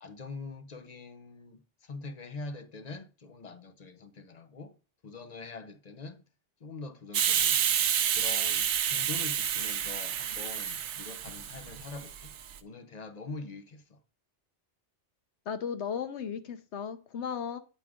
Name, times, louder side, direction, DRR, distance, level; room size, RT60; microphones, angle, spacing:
voice 1, 0.0-4.8 5.0-6.2 6.6-7.6 8.1-14.0, left 3 dB, 40° left, 0.8 m, -44 dB
Hiss, 7.1-12.5, right 9 dB, 80° right, 0.9 m, -29 dB
voice 2, 15.5-17.6, left 7 dB, 75° left, 1.1 m, -35 dB
9.1 x 4.8 x 3.6 m
omnidirectional pair, 1.2 m